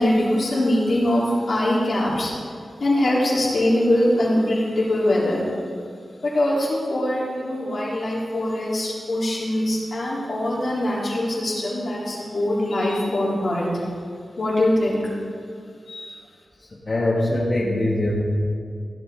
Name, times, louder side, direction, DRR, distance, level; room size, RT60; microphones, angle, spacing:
voice 1, 0.0-2.3 2.8-5.4 6.2-13.8 14.4-15.1 15.9-16.2, left 1 dB, 60° left, -6 dB, 3.8 m, -22 dB
voice 2, 16.6-18.2, left 1 dB, 40° left, -6 dB, 1.7 m, -23 dB
15.5 x 11.5 x 3.9 m, 2.2 s
wide cardioid pair, 125°, 0 cm